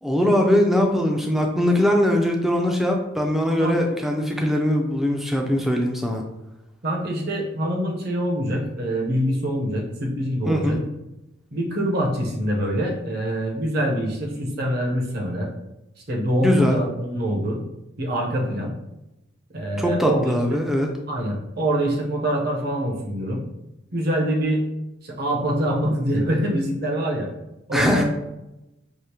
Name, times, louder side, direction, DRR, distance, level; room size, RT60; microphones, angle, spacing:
voice 1, 0.0-6.2 10.5-10.8 16.4-16.8 19.8-20.9 27.7-28.0, left 1 dB, ahead, 1 dB, 0.4 m, -21 dB
voice 2, 6.8-10.8 11.5-15.5 16.1-17.6 18.0-18.7 19.5-20.6 21.1-23.4 23.9-24.6 25.0-27.3 27.7-28.0, equal, 50° right, -1 dB, 0.8 m, -25 dB
4.8 x 2.0 x 2.9 m, 0.93 s
head